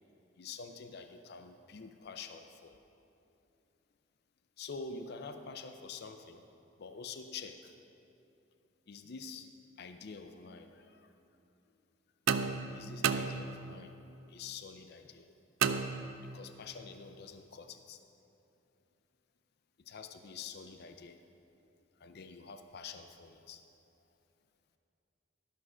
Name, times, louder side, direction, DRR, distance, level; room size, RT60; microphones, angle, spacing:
voice 1, 0.4-2.8 4.6-6.4 6.8-7.8 8.9-9.5 9.8-11.1 12.7-14.0 14.3-15.3 16.2-18.0 19.8-21.2 22.0-23.6, left 5 dB, 50° left, 7 dB, 0.5 m, -47 dB
sound 1, 12.3-13.9 15.6-16.6, right 6 dB, 80° right, 0.4 m, -33 dB
12.0 x 6.3 x 6.1 m, 2.8 s
head